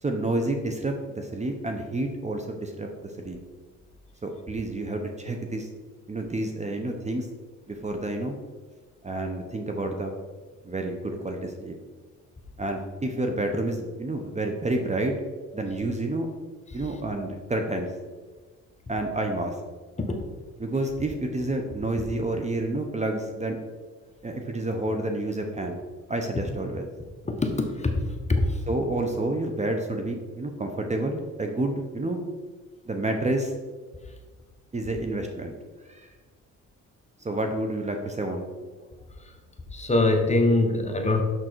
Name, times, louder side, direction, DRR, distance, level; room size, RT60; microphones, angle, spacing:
voice 1, 0.0-3.4 4.2-5.7 6.1-7.3 7.7-8.4 9.0-10.1 10.6-11.8 12.6-15.1 15.5-16.3 16.7-17.9 18.9-19.6 20.6-23.6 24.2-25.8 26.1-26.9 28.7-32.2 32.8-33.5 34.7-35.5 35.9-36.1 37.2-38.4, right 2 dB, 25° right, 4 dB, 0.9 m, -29 dB
voice 2, 27.2-28.0 28.3-28.6 39.2-39.3 39.7-41.2, left 2 dB, 20° left, 3 dB, 1.3 m, -23 dB
6.4 x 6.2 x 4.5 m, 1.4 s
cardioid pair, 90°, 30 cm